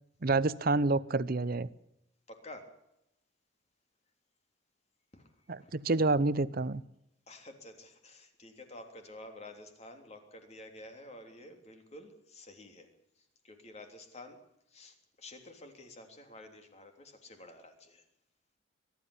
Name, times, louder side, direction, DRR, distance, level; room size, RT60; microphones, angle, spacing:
voice 1, 0.2-1.7 5.5-6.8, right 3 dB, 50° right, 0.8 m, -28 dB
voice 2, 2.3-2.8 5.1-5.7 7.3-14.4 14.7-18.1, left 1 dB, 35° left, 3.3 m, -51 dB
22.5 x 12.0 x 9.9 m
head